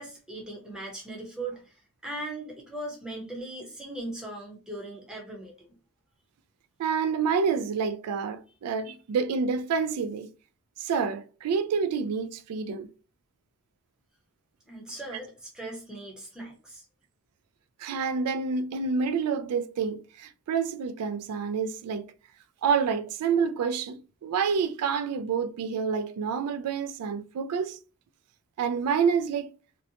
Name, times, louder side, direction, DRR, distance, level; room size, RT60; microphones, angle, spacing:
voice 1, 0.0-1.7 2.0-5.7 14.7-16.8, right 2 dB, 5° right, 0.7 m, -39 dB
voice 2, 6.8-10.3 10.8-12.9 17.8-22.1 22.6-27.8 28.6-29.5, right 6 dB, 80° right, 0.3 m, -28 dB
2.6 x 2.1 x 2.7 m
head